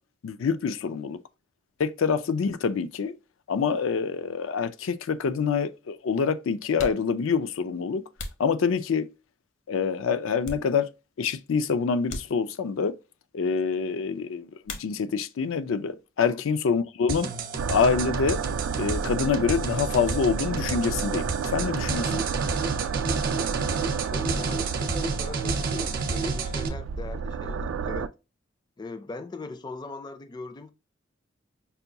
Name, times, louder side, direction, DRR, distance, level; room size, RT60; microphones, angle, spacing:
voice 1, 0.2-1.2 1.8-3.1 3.5-8.0 8.4-9.1 9.7-10.9 11.2-13.0 13.3-17.3 17.7-18.4 18.8-22.2, left 5 dB, 90° left, 0.4 m, -26 dB
sound 1, 6.7-9.3 9.8-11.2 11.4-11.6 12.0-12.9 14.6-15.4 15.7-16.4 16.6-18.8, left 2 dB, 70° left, 0.8 m, -43 dB
sound 2, 17.1-26.7, right 4 dB, 50° right, 0.7 m, -31 dB
sound 3, 17.6-28.1, right 5 dB, 80° right, 0.3 m, -31 dB
voice 2, 23.9-28.1 28.8-30.7, left 3 dB, 20° left, 0.3 m, -40 dB
5.5 x 2.2 x 2.7 m
head